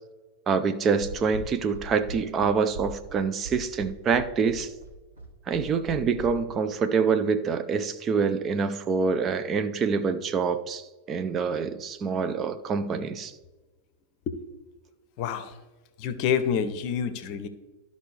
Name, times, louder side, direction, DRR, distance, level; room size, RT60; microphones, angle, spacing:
voice 1, 0.5-4.7 5.5-13.3, right 5 dB, 25° right, 10 dB, 0.5 m, -26 dB
sound 1, 1.0-6.3, right 4 dB, 70° right, 1.8 m, -40 dB
voice 2, 15.2-15.6 16.0-17.5, left 7 dB, 45° left, 11 dB, 0.7 m, -28 dB
12.5 x 5.2 x 3.2 m, 1.2 s
figure-of-eight pair, 90°, 0 cm